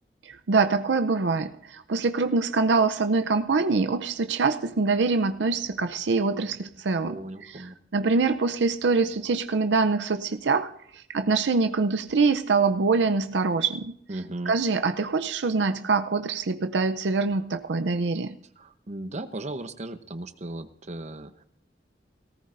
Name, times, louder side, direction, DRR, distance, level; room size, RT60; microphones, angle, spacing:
voice 1, 0.2-7.2 7.9-14.0 14.5-18.4, right 4 dB, 80° right, 0.6 m, -24 dB
voice 2, 7.1-7.7 14.1-14.5 18.6-21.4, right 2 dB, 40° right, 0.9 m, -36 dB
18.0 x 14.0 x 2.6 m
head